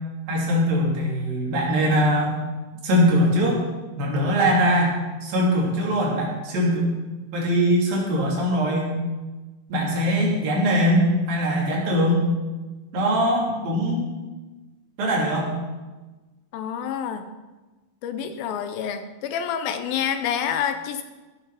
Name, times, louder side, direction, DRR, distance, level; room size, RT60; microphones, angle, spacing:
voice 1, 0.3-2.4 2.8-3.6 4.0-5.0 5.2-6.9 7.3-9.0 9.7-12.2 12.9-14.0 15.0-15.5, equal, 70° right, -3 dB, 4.3 m, -21 dB
voice 2, 16.5-17.3 18.0-21.0, left 8 dB, 80° left, 9 dB, 2.4 m, -28 dB
15.5 x 6.9 x 5.8 m, 1.2 s
omnidirectional pair, 4.4 m